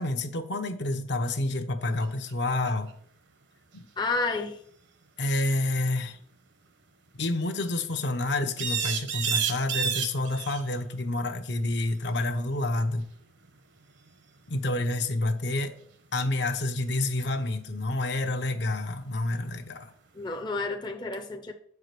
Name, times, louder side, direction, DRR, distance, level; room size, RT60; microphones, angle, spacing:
voice 1, 0.0-2.9 3.7-3.8 5.2-6.2 7.1-13.0 14.5-15.7 16.1-19.9, left 2 dB, 60° left, 0.8 m, -28 dB
sound 1, 2.0-2.1 2.3-2.9 8.6-10.6 13.5-13.6 17.2-17.3, right 7 dB, 65° right, 1.0 m, -29 dB
voice 2, 4.0-4.6 20.1-21.5, left 3 dB, 25° left, 0.6 m, -30 dB
7.3 x 4.7 x 6.7 m
head